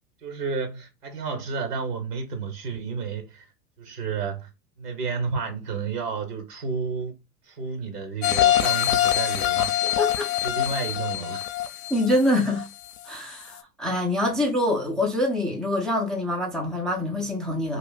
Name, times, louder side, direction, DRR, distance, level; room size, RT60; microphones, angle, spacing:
voice 1, 0.2-3.5 3.8-4.5 4.8-7.2 7.5-9.7 10.4-11.5, right 5 dB, 75° right, 1.2 m, -31 dB
sound 1, 8.2-13.0 13.4-13.5, left 13 dB, 60° left, 0.6 m, -24 dB
voice 2, 10.0-10.3 11.9-12.7 13.1-17.8, left 1 dB, ahead, 0.3 m, -25 dB
2.5 x 2.3 x 3.9 m
hypercardioid pair, 90°, 47 cm